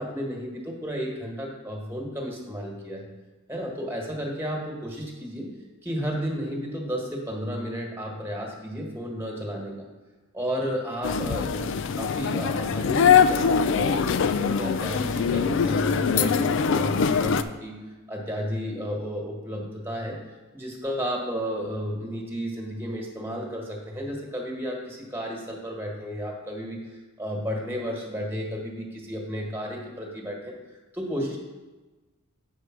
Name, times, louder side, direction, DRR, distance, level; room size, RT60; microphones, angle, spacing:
voice 1, 0.0-3.1 3.5-5.5 5.8-9.7 10.3-17.8 18.1-20.2 20.5-30.5 30.9-31.4, equal, 10° right, -1 dB, 1.5 m, -32 dB
sound 1, 11.0-17.4, left 6 dB, 60° left, 0.4 m, -23 dB
8.2 x 4.7 x 6.0 m, 1.2 s
head